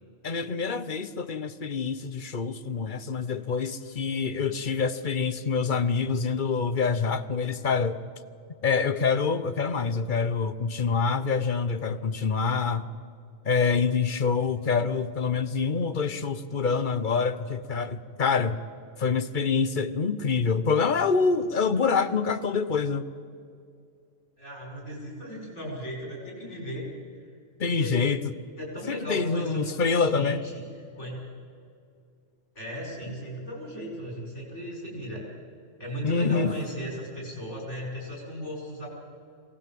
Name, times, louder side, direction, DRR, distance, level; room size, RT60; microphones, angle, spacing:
voice 1, 0.2-8.0 8.6-12.9 13.4-18.6 19.0-23.0 27.6-28.2 28.9-30.4 36.0-36.5, left 5 dB, 45° left, 12 dB, 1.0 m, -26 dB
voice 2, 24.4-26.9 27.2-27.4 27.7-27.9 28.6-30.6 31.0-31.2 32.6-35.2 35.8-38.9, equal, 75° left, -1 dB, 6.0 m, -36 dB
23.5 x 18.0 x 7.5 m, 2.4 s
omnidirectional pair, 1.2 m